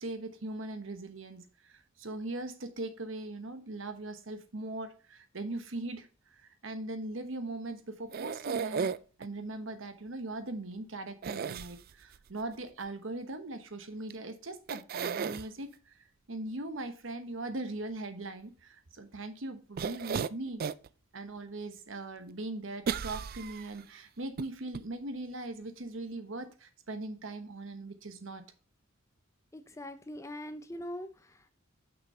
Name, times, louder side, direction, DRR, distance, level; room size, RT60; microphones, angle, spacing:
voice 1, 0.0-8.9 9.2-15.9 16.3-20.6 21.1-28.5, right 2 dB, 65° right, 1.1 m, -40 dB
sound 1, 8.1-9.3 11.2-12.2 14.1-14.2 14.7-15.5 19.8-20.9 21.4-21.5 22.9-23.8 24.4-24.5 24.7-24.8, right 6 dB, 45° right, 0.3 m, -34 dB
voice 2, 29.5-31.5, left 1 dB, 15° left, 0.6 m, -42 dB
6.4 x 6.0 x 4.2 m
head